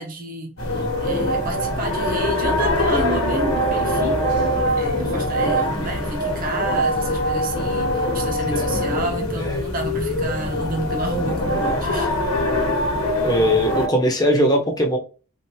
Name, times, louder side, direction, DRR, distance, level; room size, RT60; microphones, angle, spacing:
voice 1, 0.0-4.2 4.8-12.1, right 2 dB, 40° right, 0.7 m, -30 dB
sound 1, 0.6-13.9, left 1 dB, 85° left, 1.0 m, -23 dB
voice 2, 5.0-5.9 8.5-8.7 11.7-12.1 13.2-15.0, equal, 20° left, 0.7 m, -21 dB
3.3 x 2.5 x 2.7 m
head